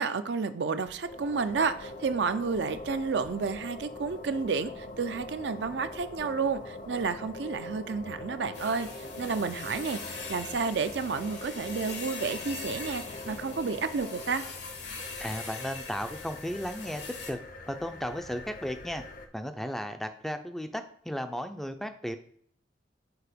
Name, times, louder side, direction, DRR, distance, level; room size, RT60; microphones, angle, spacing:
voice 1, 0.0-8.9 9.2-14.4, right 5 dB, 70° right, 10 dB, 0.5 m, -31 dB
sound 1, 0.8-19.3, left 2 dB, 50° left, 0.6 m, -43 dB
sound 2, 8.5-17.3, left 4 dB, 75° left, 1.1 m, -42 dB
voice 2, 15.2-17.4 17.7-19.0 19.3-22.2, equal, ahead, 8 dB, 0.4 m, -35 dB
4.7 x 4.1 x 5.1 m, 0.63 s
head